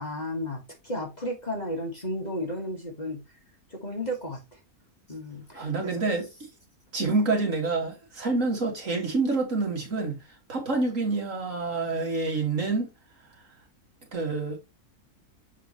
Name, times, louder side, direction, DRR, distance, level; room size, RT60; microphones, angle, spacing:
voice 1, 0.0-3.2 3.7-4.6 5.1-6.0, equal, 30° left, 1.7 m, -33 dB
voice 2, 5.5-6.3 6.9-10.2 10.5-12.9 14.1-14.6, right 3 dB, 55° right, 2.5 m, -27 dB
7.1 x 5.5 x 3.1 m
omnidirectional pair, 1.6 m